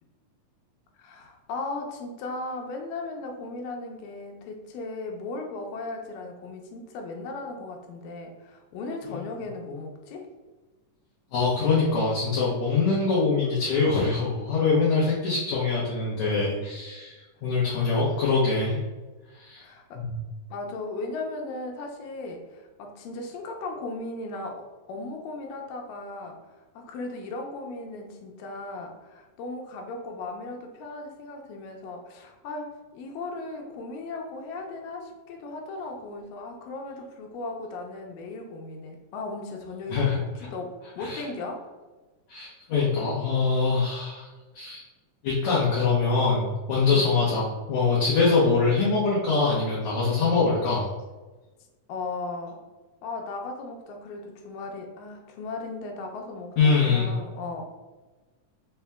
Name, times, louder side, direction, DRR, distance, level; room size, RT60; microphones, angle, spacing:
voice 1, 1.0-10.3 17.8-18.2 19.6-20.0 20.5-26.4 26.8-41.6 46.9-47.1 51.9-52.6 53.0-57.6, left 3 dB, 90° left, 2 dB, 2.4 m, -37 dB
voice 2, 11.3-17.2 17.4-18.8 19.4-19.6 20.0-20.2 39.9-40.2 41.0-41.2 42.3-44.3 44.5-44.8 45.2-50.9 56.6-57.1, left 4 dB, 70° left, -6 dB, 1.9 m, -23 dB
5.5 x 2.1 x 3.4 m, 1.2 s
omnidirectional pair, 3.8 m